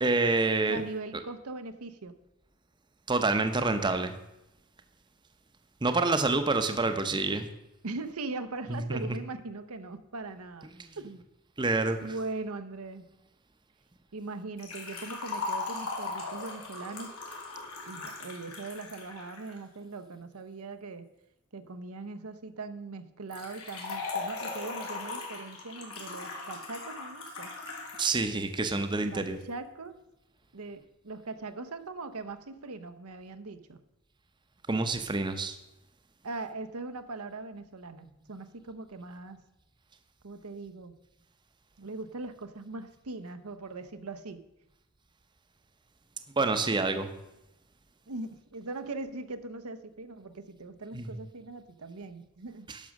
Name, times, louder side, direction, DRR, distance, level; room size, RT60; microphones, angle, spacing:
voice 1, 0.0-0.8 3.1-4.2 5.8-7.5 8.7-9.0 11.6-12.0 28.0-29.4 34.7-35.6 46.4-47.1 50.9-51.1 52.7-52.8, right 3 dB, 20° right, 8 dB, 0.7 m, -27 dB
voice 2, 0.7-2.1 6.7-7.3 7.8-10.7 11.0-11.2 12.0-13.1 14.1-17.1 17.9-21.1 21.5-27.5 29.1-30.0 30.5-33.8 36.2-39.4 40.2-40.9 41.8-44.4 48.1-52.7, right 3 dB, 85° right, 9 dB, 0.8 m, -40 dB
Liquid, 14.6-19.6 23.3-28.1 28.4-28.5 29.4-29.5, left 3 dB, 80° left, 2.8 m, -38 dB
10.5 x 6.2 x 6.3 m, 0.90 s
head